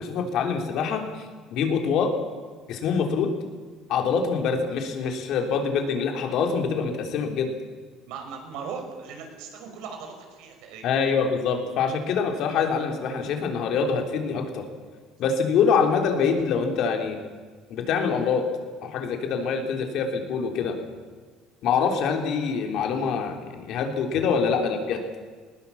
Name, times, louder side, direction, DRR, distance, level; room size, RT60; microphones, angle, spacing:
voice 1, 0.0-2.1 2.7-3.3 3.9-7.5 10.8-14.7 15.2-17.2 17.7-18.4 18.8-20.8 21.6-25.0, left 6 dB, 55° left, 4 dB, 3.5 m, -25 dB
voice 2, 8.1-10.9 20.6-20.7 24.1-24.3, right 6 dB, 75° right, 4 dB, 5.4 m, -38 dB
19.5 x 19.5 x 7.2 m, 1.5 s
cardioid pair, 145°, 0 cm